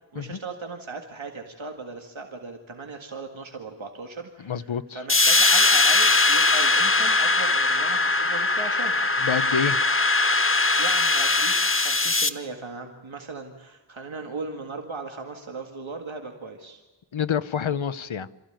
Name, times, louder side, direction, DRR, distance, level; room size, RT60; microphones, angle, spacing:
voice 1, 0.1-9.0 10.8-16.8, right 4 dB, 80° right, 3 dB, 2.0 m, -38 dB
voice 2, 4.4-5.0 9.2-9.8 17.1-18.3, left 7 dB, 80° left, 15 dB, 0.9 m, -27 dB
sound 1, 5.1-12.3, left 3 dB, 30° left, 1.1 m, -20 dB
27.0 x 15.0 x 9.1 m, 1.2 s
wide cardioid pair, 55°, 46 cm